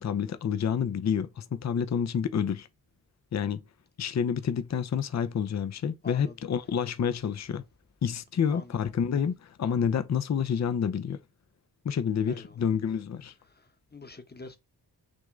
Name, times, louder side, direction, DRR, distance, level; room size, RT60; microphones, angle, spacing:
voice 1, 0.0-2.7 3.3-3.6 4.0-7.6 8.0-11.2 11.8-13.3, left 7 dB, 45° left, 0.7 m, -28 dB
voice 2, 6.0-6.4 8.5-8.8 12.3-12.6 13.5-14.6, left 3 dB, 25° left, 1.1 m, -46 dB
6.4 x 2.1 x 3.7 m
cardioid pair, 60°, 40 cm